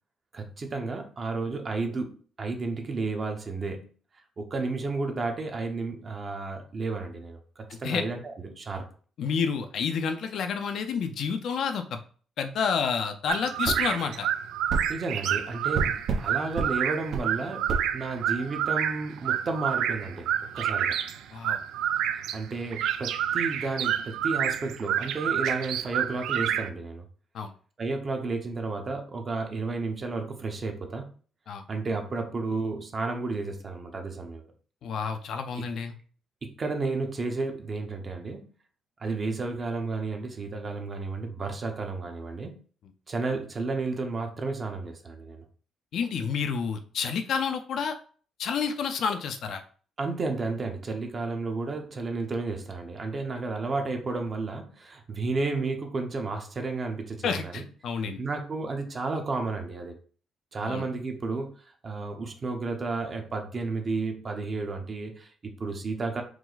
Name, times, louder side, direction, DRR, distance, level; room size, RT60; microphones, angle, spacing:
voice 1, 0.3-3.9 4.4-8.8 14.9-21.0 22.1-27.1 27.8-31.1 31.7-34.4 36.4-38.4 39.0-42.5 43.1-45.4 50.0-57.6 58.0-60.0 60.5-66.2, right 3 dB, 35° right, 4 dB, 0.8 m, -32 dB
voice 2, 7.7-8.0 9.2-12.0 12.4-14.3 21.3-21.6 27.3-27.5 31.5-31.6 34.8-35.9 45.9-48.0 48.4-49.6 57.2-58.2 60.6-60.8, left 6 dB, 65° left, 7 dB, 0.5 m, -29 dB
sound 1, 13.3-26.7, right 10 dB, 85° right, 0.3 m, -29 dB
sound 2, 13.6-13.8 14.7-14.9 15.7-16.3 16.6-16.7 17.1-17.3 17.7-17.8, right 4 dB, 70° right, 0.9 m, -28 dB
4.7 x 2.1 x 4.0 m, 0.41 s
cardioid pair, 135°, 0 cm